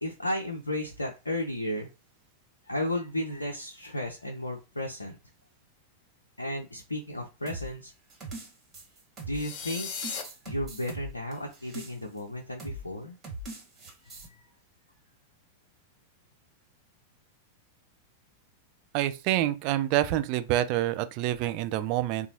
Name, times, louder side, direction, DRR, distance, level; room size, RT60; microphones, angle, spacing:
voice 1, 0.0-1.9 2.7-5.2 6.4-7.9 9.2-9.9 10.4-13.2, left 1 dB, 80° left, 0.5 m, -33 dB
sound 1, 7.5-9.6 10.0-12.2 12.6-12.8 13.2-14.3, right 2 dB, 25° right, 1.5 m, -41 dB
sound 2, 9.3-10.2, left 6 dB, 40° left, 0.7 m, -36 dB
voice 2, 18.9-22.3, right 13 dB, 45° right, 0.3 m, -27 dB
3.8 x 2.3 x 2.9 m
figure-of-eight pair, 90°, 0 cm